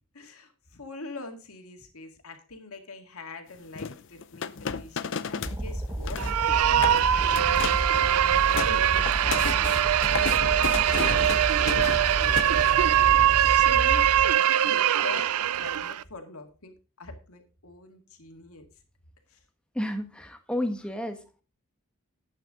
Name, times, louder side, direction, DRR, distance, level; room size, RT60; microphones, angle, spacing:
voice 1, 0.1-6.3 6.6-18.6 19.3-19.4, left 3 dB, 80° left, 5 dB, 2.1 m, -44 dB
sound 1, 3.7-5.6 5.9-6.4 6.7-7.0 7.3-7.9 8.2-13.0, left 6 dB, 55° left, 0.6 m, -33 dB
sound 2, 5.4-14.3, right 1 dB, 15° right, 1.0 m, -32 dB
sound 3, 6.2-16.0, right 11 dB, 90° right, 0.4 m, -22 dB
voice 2, 19.7-21.4, left 1 dB, 5° left, 6 dB, 1.3 m, -31 dB
11.0 x 8.8 x 3.8 m, 0.34 s
head